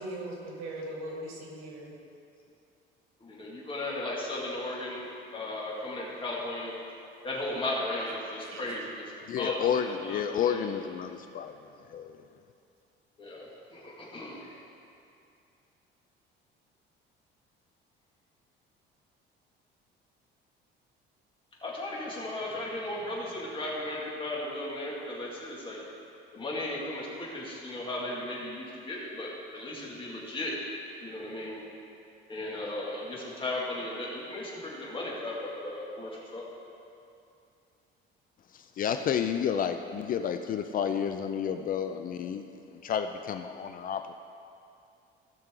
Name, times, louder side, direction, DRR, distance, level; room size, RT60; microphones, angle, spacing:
voice 1, 0.0-1.9 8.5-8.6, right 1 dB, 80° right, -1 dB, 2.3 m, -39 dB
voice 2, 3.2-6.7 7.2-10.7 13.2-14.5 21.6-25.8 26.3-30.5 31.0-31.6 32.3-36.4, left 1 dB, 25° left, -4 dB, 2.2 m, -36 dB
voice 3, 9.3-11.5 11.9-12.2 38.5-44.1, left 8 dB, 45° left, 7 dB, 0.4 m, -31 dB
16.5 x 6.1 x 3.8 m, 2.6 s
cardioid pair, 140°, 21 cm